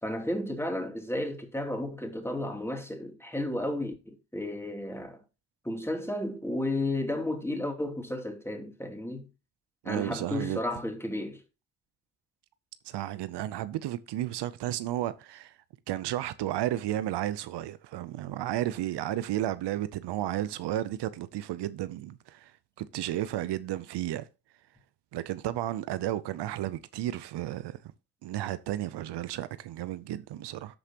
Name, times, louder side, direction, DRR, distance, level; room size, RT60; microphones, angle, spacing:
voice 1, 0.0-5.2 5.6-9.3 9.8-11.4, left 1 dB, 5° left, 2.7 m, -33 dB
voice 2, 9.8-10.6 12.8-15.6 15.9-24.3 25.1-27.8 28.2-30.8, right 13 dB, 90° right, 0.6 m, -33 dB
13.0 x 4.9 x 2.9 m
supercardioid pair, 45°, 40 cm